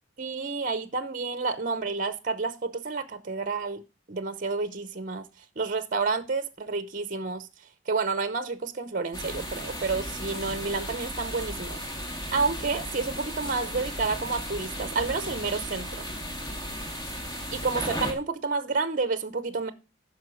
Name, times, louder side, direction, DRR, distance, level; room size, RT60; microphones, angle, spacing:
voice 1, 0.2-3.8 4.1-5.3 5.6-7.5 7.9-11.8 12.3-16.1 17.5-19.7, right 4 dB, 45° right, 0.7 m, -30 dB
sound 1, 9.1-18.1, equal, 20° left, 2.4 m, -35 dB
9.5 x 5.9 x 6.2 m
head